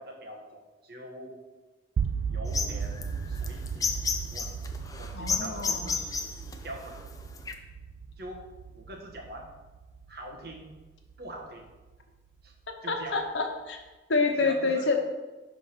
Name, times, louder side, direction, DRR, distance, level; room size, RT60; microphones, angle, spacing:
voice 1, 0.0-1.4 2.3-3.9 4.3-6.0 6.6-7.0 8.2-8.4 8.7-9.5 10.1-10.7 11.2-11.7 12.4-12.5 12.8-13.2 14.4-14.9, right 1 dB, 55° right, 1 dB, 1.5 m, -43 dB
sound 1, 2.0-12.0, right 6 dB, 85° right, 0.3 m, -36 dB
sound 2, 2.5-7.5, left 5 dB, 20° left, 0.5 m, -32 dB
voice 2, 5.1-5.9 12.7-13.8 14.1-15.0, left 3 dB, 85° left, 4 dB, 1.2 m, -28 dB
10.0 x 3.9 x 5.9 m, 1.2 s
head